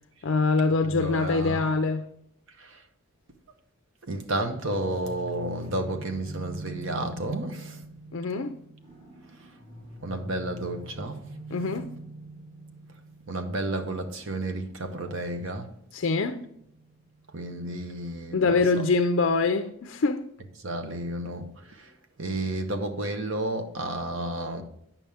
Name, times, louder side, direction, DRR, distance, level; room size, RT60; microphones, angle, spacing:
voice 1, 0.2-2.0 8.1-8.5 11.5-11.9 15.9-16.4 18.3-20.3, left 3 dB, 55° left, 0.4 m, -24 dB
voice 2, 0.8-1.6 2.6-2.8 4.0-7.8 10.0-11.2 13.3-15.7 17.3-18.5 20.6-21.9 22.2-24.6, right 2 dB, 60° right, 0.9 m, -31 dB
sound 1, 4.6-17.3, right 1 dB, 25° right, 1.5 m, -44 dB
8.9 x 5.8 x 3.4 m
head